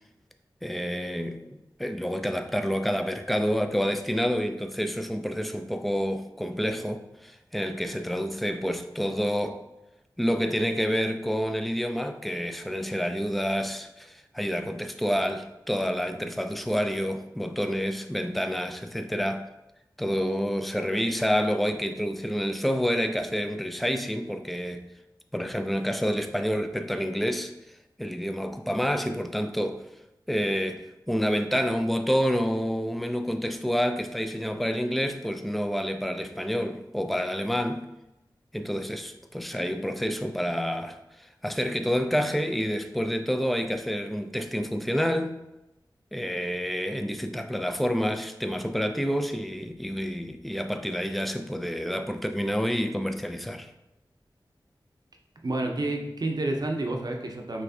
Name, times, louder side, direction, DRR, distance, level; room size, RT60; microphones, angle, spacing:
voice 1, 0.6-1.4 1.8-9.6 10.2-19.5 20.0-24.9 25.3-27.5 28.0-29.8 30.3-37.9 38.5-45.4 46.1-53.7, equal, ahead, 0.3 m, -28 dB
voice 2, 55.4-57.6, right 2 dB, 55° right, 0.6 m, -29 dB
5.5 x 3.1 x 2.7 m
wide cardioid pair, 70°, 8 cm